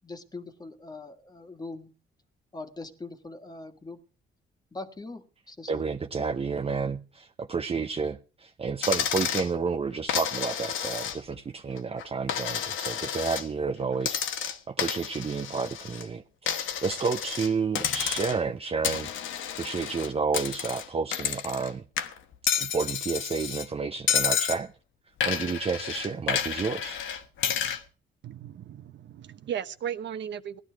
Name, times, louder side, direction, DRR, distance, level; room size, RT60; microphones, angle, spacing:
voice 1, 0.0-1.9 2.5-4.0 4.7-5.8, left 3 dB, 20° left, 1.6 m, -42 dB
voice 2, 5.7-19.1 19.6-21.9 22.6-24.7 25.3-27.0, right 5 dB, 30° right, 0.7 m, -30 dB
Coin (dropping), 8.8-9.5 10.1-11.4 11.8-13.5 14.0-16.1 16.5-17.5 17.8-18.5 18.8-21.7 22.0-23.7 24.1-24.6 25.2-27.8, left 9 dB, 80° left, 1.2 m, -30 dB
voice 3, 28.2-30.6, right 9 dB, 65° right, 1.1 m, -36 dB
17.0 x 11.5 x 4.6 m
cardioid pair, 90°, 20 cm